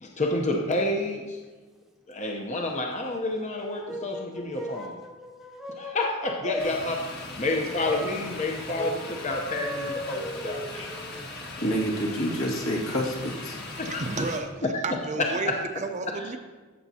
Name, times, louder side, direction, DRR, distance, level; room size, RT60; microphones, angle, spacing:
voice 1, 0.0-1.4 2.1-4.9 5.8-7.0 7.4-10.6 13.8-14.0 14.7-14.8 15.2-15.6 16.2-16.3, left 2 dB, 35° left, 1 dB, 0.7 m, -29 dB
sound 1, 3.2-6.8 7.7-8.2 8.7-11.2, equal, ahead, 0.8 m, -37 dB
sound 2, 6.6-14.4, left 2 dB, 50° left, 1.6 m, -39 dB
voice 2, 11.6-13.6, equal, 70° left, -2 dB, 2.0 m, -28 dB
voice 3, 13.8-16.4, right 3 dB, 35° right, 7 dB, 0.5 m, -32 dB
15.0 x 7.2 x 2.8 m, 1.3 s
head